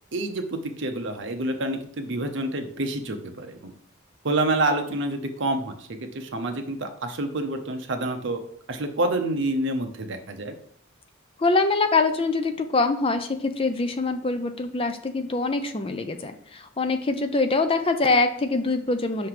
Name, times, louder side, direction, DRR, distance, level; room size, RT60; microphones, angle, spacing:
voice 1, 0.1-3.7 4.2-8.4 8.7-10.5, right 2 dB, 60° right, 6 dB, 0.8 m, -28 dB
voice 2, 11.4-19.3, left 3 dB, 25° left, 8 dB, 0.4 m, -24 dB
5.7 x 3.3 x 5.8 m, 0.62 s
head